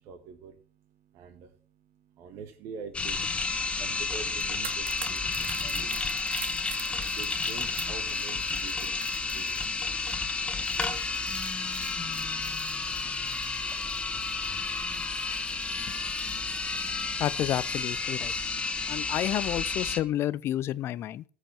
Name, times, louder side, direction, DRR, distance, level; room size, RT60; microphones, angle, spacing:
voice 1, 0.0-16.2, right 6 dB, 55° right, 1.6 m, -48 dB
sound 1, 2.9-20.0, left 4 dB, 20° left, 1.5 m, -31 dB
sound 2, 4.3-17.4 17.7-17.9, right 8 dB, 85° right, 1.1 m, -46 dB
voice 2, 17.2-18.3 18.9-21.2, left 12 dB, 45° left, 0.6 m, -30 dB
14.0 x 5.1 x 7.2 m
hypercardioid pair, 80°, 6 cm